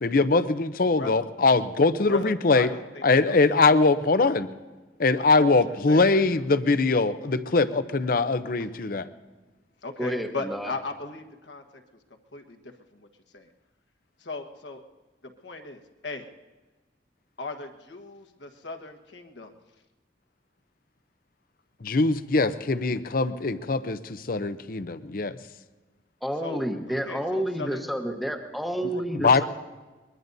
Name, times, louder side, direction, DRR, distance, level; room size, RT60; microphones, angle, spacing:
voice 1, 0.0-2.7 3.0-4.5 5.0-9.1 21.8-25.4 29.1-29.5, left 3 dB, 55° left, 12 dB, 0.7 m, -22 dB
voice 2, 2.1-3.4 5.2-5.6 5.9-6.2 9.8-11.6 12.3-12.6 12.9-13.1 13.3-13.5 14.2-14.8 15.2-16.3 17.4-19.5 26.4-26.6 26.9-27.8 28.9-29.0, left 3 dB, 80° left, 5 dB, 1.4 m, -37 dB
voice 3, 10.0-10.7 26.2-29.5, equal, ahead, 4 dB, 1.1 m, -30 dB
23.0 x 21.5 x 2.7 m, 1.2 s
head